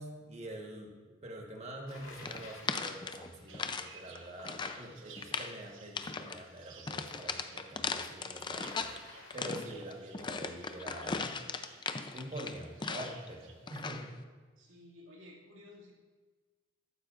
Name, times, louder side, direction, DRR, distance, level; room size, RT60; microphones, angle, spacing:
voice 1, 0.0-8.8 9.3-11.3 12.1-14.1, right 1 dB, 35° right, 1 dB, 1.4 m, -45 dB
Bicycle, 1.9-3.0 8.5-9.8, left 2 dB, 80° left, 2.1 m, -52 dB
sound 1, 2.2-3.9 4.2-4.8 5.2-5.6 5.9-6.4 6.9-9.0 9.3-13.3 13.7-14.1, left 4 dB, 25° left, 0.5 m, -38 dB
sound 2, 3.5-13.8, right 5 dB, 70° right, 1.0 m, -57 dB
voice 2, 14.6-15.9, left 1 dB, 90° right, -3 dB, 2.2 m, -54 dB
14.0 x 12.0 x 2.5 m, 1.4 s
head